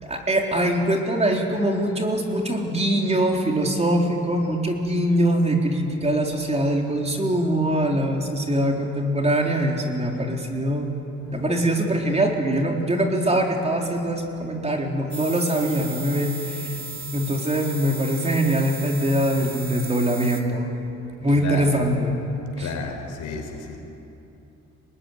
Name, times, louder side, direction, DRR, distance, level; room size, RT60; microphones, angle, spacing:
voice 1, 0.0-10.9 11.3-16.8 17.1-20.7 21.2-22.2 22.6-22.7, right 1 dB, 20° right, 1 dB, 4.0 m, -23 dB
sound 1, 15.1-20.4, right 4 dB, 40° right, 3.0 m, -36 dB
voice 2, 21.4-21.7 22.6-23.8, left 5 dB, 80° left, 3 dB, 4.8 m, -32 dB
25.5 x 20.0 x 10.0 m, 2.8 s
cardioid pair, 90°, 30 cm